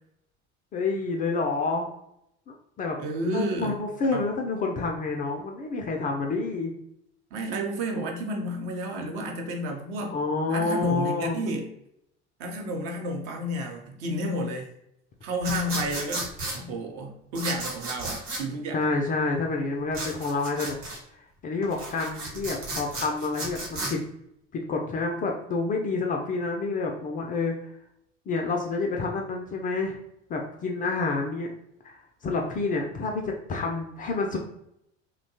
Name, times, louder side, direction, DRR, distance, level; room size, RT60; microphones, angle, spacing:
voice 1, 0.7-1.9 2.5-3.0 3.2-6.7 10.1-11.4 18.7-20.8 21.1-24.0 24.5-27.7 28.3-30.0 30.3-31.5 31.8-32.0 32.2-34.4, left 3 dB, 25° left, 1 dB, 0.3 m, -28 dB
voice 2, 3.0-3.8 4.1-4.3 7.3-10.2 10.5-11.7 12.4-14.7 15.2-18.9, equal, 55° right, 2 dB, 0.7 m, -31 dB
sound 1, 15.4-16.6 17.3-18.4 19.9-21.0 21.6-23.9, right 2 dB, 80° right, 1.0 m, -34 dB
2.8 x 2.2 x 2.6 m, 0.77 s
figure-of-eight pair, 65°, 36 cm